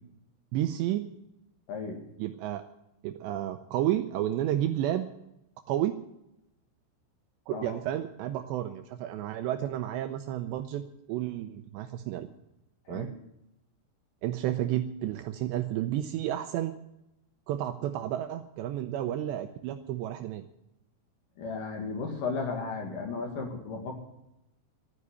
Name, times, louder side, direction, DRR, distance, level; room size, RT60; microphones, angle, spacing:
voice 1, 0.5-1.1 2.2-2.7 3.0-5.1 5.7-6.0 7.5-10.8 11.1-12.3 12.9-13.1 14.2-16.7 17.5-20.4, right 12 dB, 80° right, 9 dB, 2.6 m, -31 dB
voice 2, 1.7-2.0 7.5-7.8 12.9-13.1 21.4-23.9, left 4 dB, 55° left, 3 dB, 2.8 m, -34 dB
12.5 x 10.0 x 9.6 m, 0.86 s
omnidirectional pair, 5.6 m